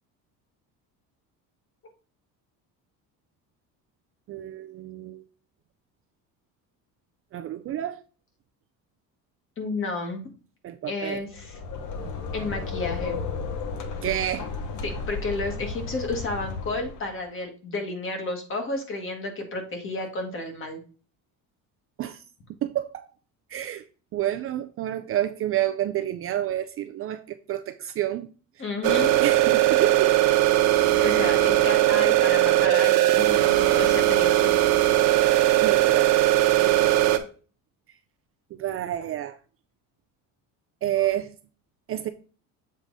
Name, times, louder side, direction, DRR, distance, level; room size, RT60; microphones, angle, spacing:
voice 1, 4.3-5.2 7.3-8.0 10.6-11.2 12.0-12.1 14.0-14.5 22.0-22.2 22.6-23.1 23.5-23.8 24.1-28.6 29.1-30.2 30.9-31.4 35.6-36.2 36.6-37.0 38.5-39.4 40.8-41.3 41.9-42.1, right 12 dB, 40° right, 0.4 m, -29 dB
voice 2, 9.6-10.2 10.9-11.6 12.3-13.2 14.8-20.8 28.6-29.1 31.0-34.6, left 2 dB, 35° left, 1.7 m, -31 dB
sound 1, 11.2-17.2, left 4 dB, 55° left, 1.1 m, -33 dB
sound 2, 28.8-37.2, right 14 dB, 85° right, 0.9 m, -19 dB
7.5 x 3.6 x 4.0 m
cardioid pair, 150°, 35 cm